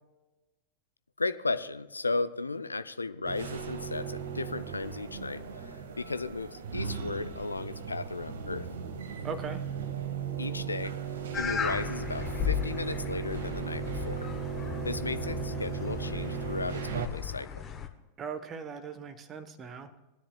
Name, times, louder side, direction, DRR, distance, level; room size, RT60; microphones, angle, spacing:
voice 1, 1.2-8.7 10.4-10.9 11.4-14.3 14.8-17.5, left 3 dB, 80° left, 13 dB, 0.5 m, -35 dB
sound 1, 3.2-17.1, right 7 dB, 60° right, 1.1 m, -37 dB
voice 2, 9.2-9.6 18.2-19.9, right 5 dB, 25° right, 11 dB, 1.0 m, -39 dB
sound 2, 11.3-17.9, left 7 dB, 25° left, 1.0 m, -36 dB
20.0 x 10.0 x 2.3 m, 1.1 s
figure-of-eight pair, 90°, 0 cm